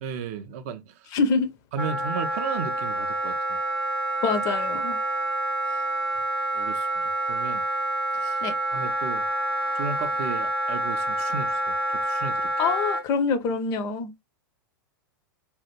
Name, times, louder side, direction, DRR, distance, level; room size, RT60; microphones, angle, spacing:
voice 1, 0.0-1.1 1.7-3.6 5.7-5.8 6.5-7.6 8.1-8.4 8.7-9.3 9.7-12.5, right 6 dB, 40° right, 0.5 m, -35 dB
voice 2, 1.1-1.5 4.2-5.0 8.4-8.5 12.6-14.1, left 5 dB, 30° left, 0.5 m, -25 dB
Wind instrument woodwind instrument, 1.8-13.0, right 1 dB, 90° left, 0.5 m, -27 dB
3.3 x 2.3 x 2.9 m
figure-of-eight pair, 100°, 12 cm